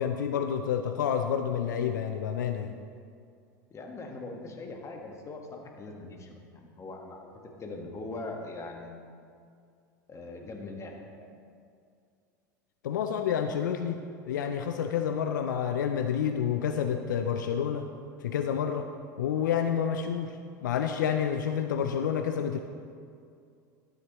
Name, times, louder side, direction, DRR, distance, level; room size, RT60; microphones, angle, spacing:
voice 1, 0.0-2.8 12.8-14.0 14.2-17.9 18.2-18.9 19.2-20.4 20.6-22.6, left 8 dB, 80° left, 7 dB, 0.4 m, -29 dB
voice 2, 3.7-7.3 7.6-9.1 10.1-11.3, left 2 dB, 30° left, 2 dB, 1.5 m, -41 dB
12.0 x 7.8 x 3.1 m, 2.3 s
hypercardioid pair, 85°, 10 cm